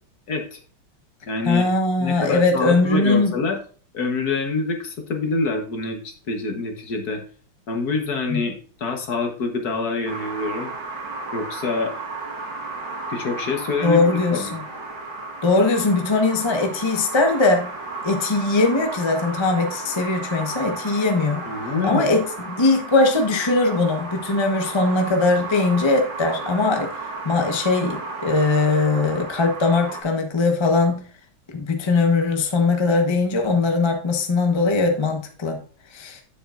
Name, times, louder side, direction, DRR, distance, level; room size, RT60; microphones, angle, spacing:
voice 1, 0.3-0.6 1.3-1.7 2.0-3.6 3.9-7.2 7.7-10.7 11.3-11.9 13.1-14.5 21.4-22.1, left 4 dB, 50° left, 3 dB, 1.6 m, -26 dB
voice 2, 1.4-3.3 8.3-8.4 13.8-14.6 15.4-17.7 18.0-21.5 21.8-26.9 27.2-31.0 31.5-35.6 35.9-36.2, left 3 dB, 25° left, 3 dB, 0.5 m, -20 dB
sound 1, 10.1-30.0, right 3 dB, 60° right, 2.1 m, -33 dB
9.6 x 7.8 x 2.5 m, 0.41 s
omnidirectional pair, 2.3 m